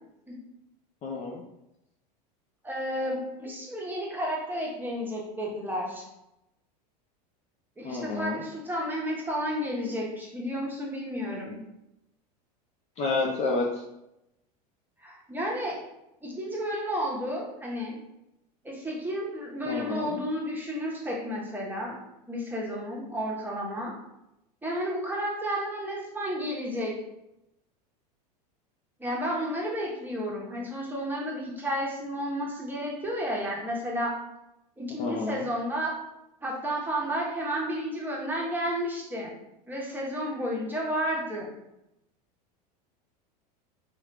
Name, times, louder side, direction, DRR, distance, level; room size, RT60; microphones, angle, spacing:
voice 1, 1.0-1.4 7.8-8.4 13.0-13.8 19.7-20.2 35.0-35.5, left 3 dB, 35° left, -1 dB, 0.5 m, -30 dB
voice 2, 2.6-6.0 7.8-11.6 15.0-15.8 16.2-18.0 18.6-22.0 22.3-23.9 24.6-26.9 29.0-34.2 34.8-35.9 36.4-39.3 39.7-41.5, equal, 10° right, -3 dB, 1.0 m, -32 dB
2.9 x 2.4 x 3.2 m, 0.87 s
hypercardioid pair, 95°, 21 cm